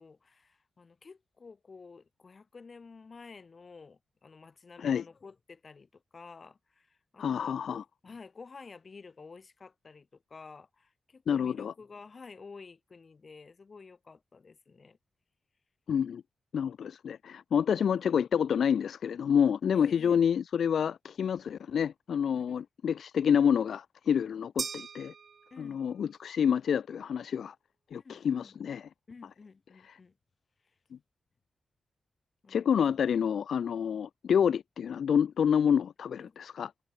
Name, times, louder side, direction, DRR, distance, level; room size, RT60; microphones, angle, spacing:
voice 1, 0.0-15.0 19.7-20.2 22.3-22.6 25.5-25.8 27.9-28.6 29.1-30.2 32.4-32.9 36.2-36.4, left 4 dB, 35° left, 1.8 m, -51 dB
voice 2, 7.2-7.8 11.3-11.7 15.9-16.2 16.5-25.1 25.6-27.6 27.9-28.9 32.5-36.7, left 8 dB, 80° left, 0.4 m, -28 dB
sound 1, 24.6-26.0, right 6 dB, 50° right, 1.1 m, -40 dB
wide cardioid pair, 170°, 0 cm